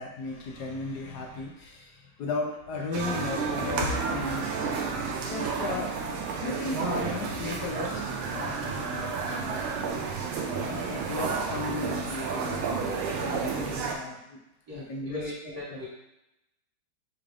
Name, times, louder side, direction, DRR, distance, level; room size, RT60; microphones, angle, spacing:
voice 1, 0.0-4.7 5.0-6.0 6.4-8.9 9.2-9.6 10.6-14.4 14.7-15.2 15.7-15.8, left 3 dB, 65° left, 0 dB, 1.1 m, -35 dB
sound 1, 2.9-14.0, right 5 dB, 90° right, 1.5 m, -31 dB
voice 2, 12.8-13.5 14.7-15.9, left 1 dB, 50° right, -9 dB, 1.8 m, -40 dB
6.0 x 2.5 x 3.4 m, 0.88 s
omnidirectional pair, 2.2 m